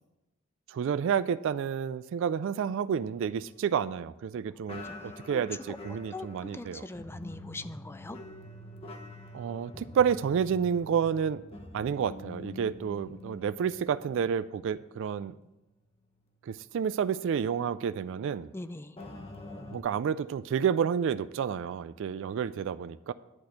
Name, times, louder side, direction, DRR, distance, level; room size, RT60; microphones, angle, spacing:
voice 1, 0.7-6.9 9.3-11.4 11.7-15.4 16.4-18.5 19.7-23.1, right 7 dB, 65° right, 15 dB, 0.3 m, -30 dB
sound 1, 2.9-4.2 4.7-15.1 15.4-15.6 16.2-16.3 19.0-19.8, left 1 dB, 30° left, 1.0 m, -46 dB
voice 2, 6.1-8.2 18.5-18.9, left 2 dB, 10° left, 12 dB, 0.4 m, -41 dB
10.5 x 4.3 x 7.8 m, 0.98 s
head